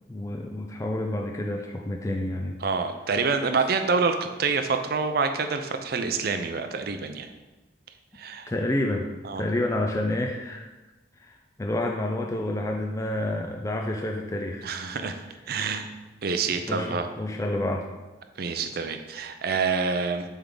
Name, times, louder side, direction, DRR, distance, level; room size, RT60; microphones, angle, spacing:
voice 1, 0.1-2.6 8.5-9.1 9.4-10.7 11.2-14.7 16.7-17.9, left 1 dB, 15° left, 1 dB, 0.4 m, -29 dB
voice 2, 2.6-7.3 8.1-8.5 9.2-9.4 14.6-15.9 16.2-17.1 18.4-20.2, right 4 dB, 55° right, 7 dB, 0.5 m, -27 dB
7.1 x 3.5 x 3.8 m, 1.1 s
head